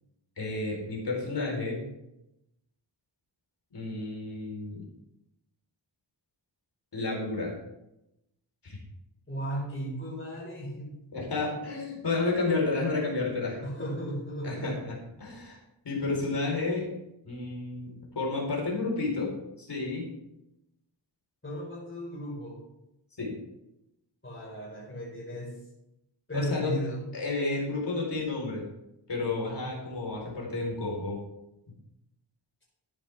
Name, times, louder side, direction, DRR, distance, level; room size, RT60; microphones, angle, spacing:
voice 1, 0.4-1.8 3.7-4.8 6.9-7.6 8.6-8.8 11.1-13.6 14.4-14.9 15.2-15.6 15.8-16.9 17.2-19.3 19.6-20.0 23.2-23.3 26.3-26.7 27.1-28.6 29.1-31.2, left 3 dB, 60° left, -2 dB, 4.4 m, -31 dB
voice 2, 9.3-11.0 13.6-14.8 21.4-22.6 24.2-25.6 26.3-27.0, right 1 dB, 25° left, -9 dB, 4.7 m, -35 dB
13.0 x 10.0 x 3.6 m, 0.88 s
wide cardioid pair, 125°, 46 cm